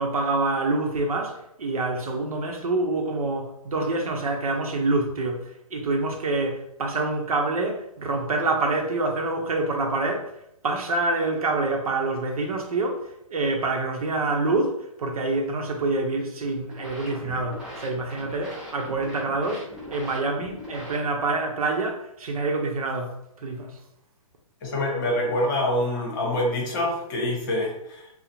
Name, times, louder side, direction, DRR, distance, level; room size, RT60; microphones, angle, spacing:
voice 1, 0.0-23.8, right 2 dB, 85° right, 0.6 m, -26 dB
sound 1, 16.5-21.4, left 1 dB, 5° right, 0.3 m, -41 dB
voice 2, 24.6-28.1, left 1 dB, 35° left, 0.8 m, -26 dB
2.4 x 2.0 x 2.8 m
hypercardioid pair, 150°, 18 cm